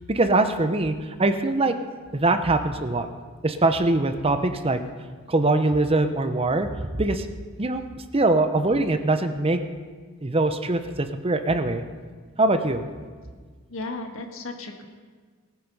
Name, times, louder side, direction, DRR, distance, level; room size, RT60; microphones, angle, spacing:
voice 1, 0.1-1.7 2.1-3.1 3.4-4.8 5.3-7.3 7.6-7.9 8.1-9.6 10.2-11.8 12.4-12.9, right 2 dB, 25° right, 8 dB, 0.8 m, -22 dB
voice 2, 13.7-14.9, left 2 dB, 65° left, 4 dB, 1.7 m, -34 dB
18.5 x 9.5 x 5.4 m, 1.5 s
head